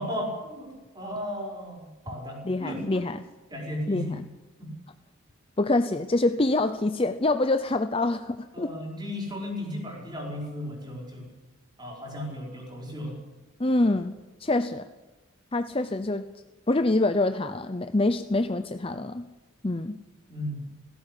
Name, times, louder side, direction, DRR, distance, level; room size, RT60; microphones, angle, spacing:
voice 1, 0.0-3.0 3.5-4.1 4.6-4.7 8.5-11.3 11.8-13.2 20.3-20.7, left 1 dB, 20° right, 0 dB, 5.1 m, -35 dB
voice 2, 2.4-3.2 3.9-4.3 5.6-8.7 13.6-14.9 15.5-16.3 16.7-19.3 19.6-20.0, left 2 dB, 25° left, 10 dB, 0.6 m, -26 dB
17.0 x 16.5 x 9.9 m, 1.1 s
head